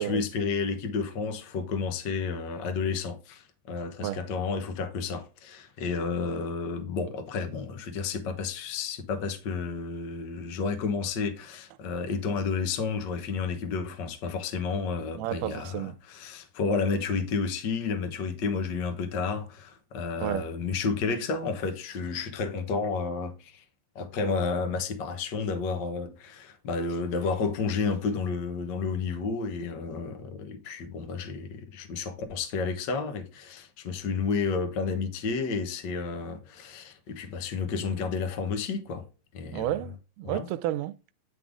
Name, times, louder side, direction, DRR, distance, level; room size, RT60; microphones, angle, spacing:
voice 1, 0.0-23.6 23.9-39.0 39.3-39.8 40.2-40.5, left 5 dB, 75° left, 1.0 m, -31 dB
voice 2, 15.2-16.0 20.2-20.5 39.5-41.1, right 14 dB, 85° right, 2.1 m, -31 dB
10.0 x 3.7 x 3.6 m
omnidirectional pair, 3.6 m